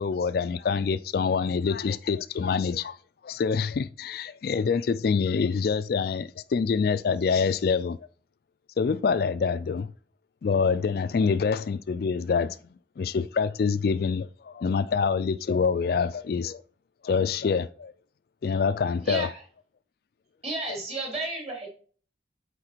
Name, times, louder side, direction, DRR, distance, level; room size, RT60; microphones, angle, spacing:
voice 1, 0.0-3.0 3.2-8.0 8.8-9.9 10.4-12.6 13.0-16.6 17.0-17.9 18.4-19.3, left 5 dB, 55° left, 0.3 m, -26 dB
voice 2, 19.0-19.4 20.4-21.7, right 2 dB, 35° right, 3.5 m, -32 dB
8.7 x 4.2 x 4.5 m
head